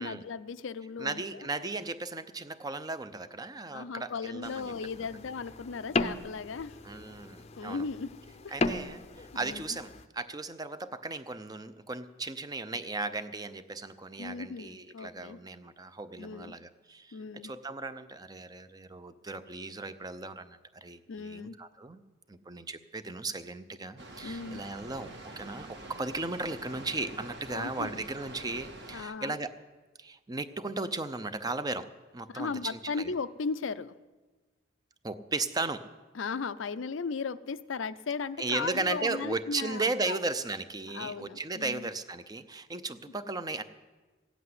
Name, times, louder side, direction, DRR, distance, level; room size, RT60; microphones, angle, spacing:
voice 1, 0.0-1.5 3.7-6.8 7.6-8.1 8.4-8.5 9.3-9.8 14.2-15.4 16.2-16.6 17.1-17.5 21.1-21.6 24.2-24.6 27.5-27.9 28.9-29.3 32.3-33.9 36.1-40.2 40.9-41.9, left 5 dB, 80° left, 13 dB, 0.5 m, -37 dB
voice 2, 1.0-4.7 6.8-7.9 8.5-22.0 22.3-25.1 25.4-29.5 30.0-31.9 32.1-33.1 35.0-35.9 38.4-43.6, right 3 dB, 20° right, 11 dB, 0.6 m, -36 dB
sound 1, 4.4-10.1, left 3 dB, 35° left, 0.6 m, -36 dB
Water, 24.0-29.0, right 1 dB, 60° right, 1.8 m, -46 dB
15.5 x 8.2 x 9.5 m, 1.3 s
head